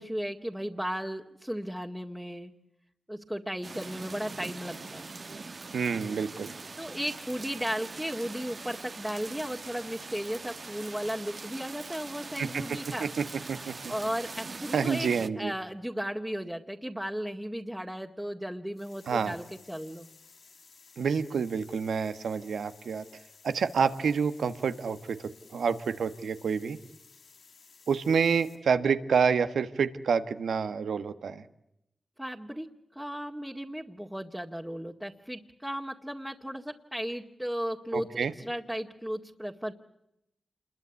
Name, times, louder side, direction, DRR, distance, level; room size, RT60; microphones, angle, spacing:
voice 1, 0.0-2.5 3.1-5.1 6.8-13.0 13.9-15.1 15.4-20.1 32.2-39.7, equal, 5° right, 0 dB, 2.1 m, -35 dB
sound 1, 3.6-15.3, right 3 dB, 55° right, 1.4 m, -42 dB
voice 2, 5.7-6.5 12.4-13.1 13.5-13.9 14.7-15.5 19.1-19.3 21.0-23.0 23.4-26.8 27.9-31.4 37.9-38.3, right 6 dB, 85° right, 10 dB, 1.4 m, -28 dB
sound 2, 18.7-28.6, left 5 dB, 75° left, 6.3 m, -56 dB
27.5 x 22.0 x 8.3 m, 0.83 s
cardioid pair, 45°, 0 cm